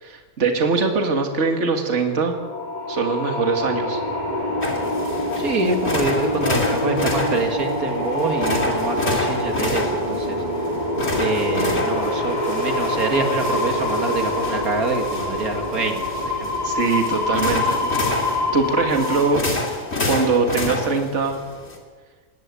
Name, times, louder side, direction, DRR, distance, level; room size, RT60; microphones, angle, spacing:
voice 1, 0.0-2.4 2.9-4.0 16.6-17.8 18.1-19.5 20.1-21.4, right 4 dB, 50° right, 4 dB, 2.1 m, -22 dB
sound 1, 2.1-19.2, left 1 dB, 30° left, 4.4 m, -25 dB
sound 2, 4.6-21.8, left 2 dB, 45° left, 3.2 m, -29 dB
voice 2, 5.3-10.4 11.2-16.5 17.8-18.1, right 3 dB, 75° right, 4 dB, 2.5 m, -26 dB
20.0 x 18.0 x 8.4 m, 1.5 s
omnidirectional pair, 1.5 m